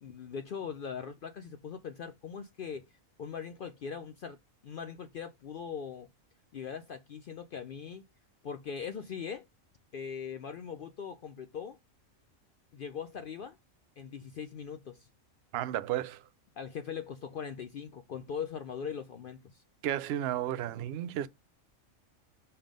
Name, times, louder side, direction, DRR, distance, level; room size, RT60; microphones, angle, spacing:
voice 1, 0.0-2.9 3.2-4.4 4.6-6.1 6.5-8.0 8.4-9.5 9.9-11.8 12.7-13.6 14.0-15.1 16.6-19.6, left 7 dB, 65° left, 0.5 m, -40 dB
voice 2, 15.5-16.2 19.8-21.3, right 12 dB, 65° right, 0.6 m, -33 dB
5.5 x 3.6 x 5.1 m
omnidirectional pair, 1.4 m